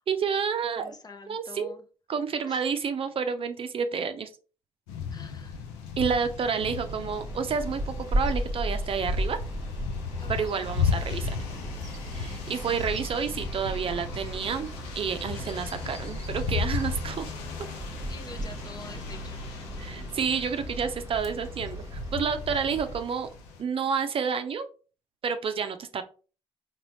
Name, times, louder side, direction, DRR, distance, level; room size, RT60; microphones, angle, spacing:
voice 1, 0.1-0.9 1.3-1.7 2.1-4.3 6.0-9.4 10.3-11.3 12.1-14.7 14.9-17.3 19.8-23.3 23.6-24.7 25.2-26.0, right 6 dB, 45° right, 8 dB, 0.5 m, -29 dB
voice 2, 0.8-1.8 2.5-2.7 5.1-5.7 10.2-10.5 18.1-19.7 22.5-23.2, left 3 dB, 30° left, 7 dB, 0.7 m, -47 dB
sound 1, 4.9-23.6, left 5 dB, 80° left, 0.6 m, -35 dB
Bird vocalization bird call bird song, 6.6-23.0, right 1 dB, 25° right, 1.1 m, -36 dB
4.0 x 3.0 x 3.0 m, 0.36 s
hypercardioid pair, 45°, 13 cm